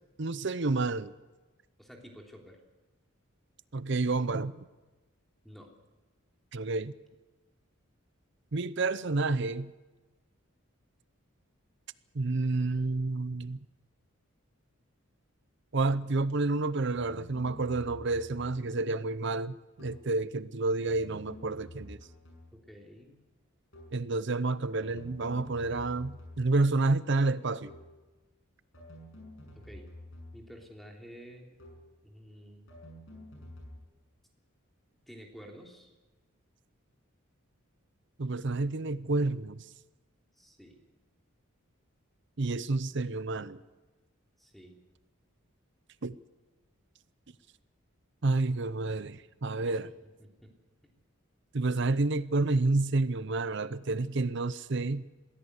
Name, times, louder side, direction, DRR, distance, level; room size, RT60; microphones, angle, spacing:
voice 1, 0.2-1.1 3.7-4.5 6.5-6.9 8.5-9.7 12.1-13.6 15.7-22.0 23.9-27.7 38.2-39.6 42.4-43.6 46.0-46.2 48.2-49.9 51.5-55.0, right 3 dB, 60° right, 0.7 m, -29 dB
voice 2, 1.8-2.6 5.4-5.7 22.5-23.2 29.5-29.9 30.3-31.6 32.0-32.7 35.1-35.9 40.4-40.8 44.4-44.8 49.6-49.9 50.2-50.5, equal, ahead, 3.1 m, -50 dB
sound 1, 16.9-18.8 19.8-20.2 20.9-22.8 23.7-24.1 24.8-26.7 27.7-28.1 28.7-30.7 31.6-32.0 32.7-33.8, left 1 dB, 65° left, 6.8 m, -49 dB
22.0 x 16.0 x 8.1 m
head